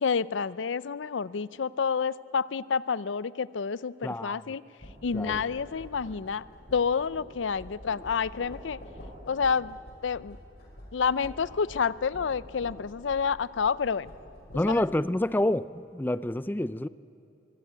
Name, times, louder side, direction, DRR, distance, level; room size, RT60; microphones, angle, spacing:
voice 1, 0.0-4.6 5.0-6.4 6.7-8.8 9.3-9.8 10.0-10.4 10.9-14.1 14.6-14.8, left 6 dB, 85° left, 18 dB, 0.5 m, -29 dB
voice 2, 4.0-4.4 5.1-5.4 14.5-16.9, left 1 dB, 10° left, 16 dB, 0.4 m, -28 dB
sound 1, 4.8-14.9, equal, 60° left, 5.9 m, -47 dB
24.0 x 16.5 x 9.5 m, 2.8 s
head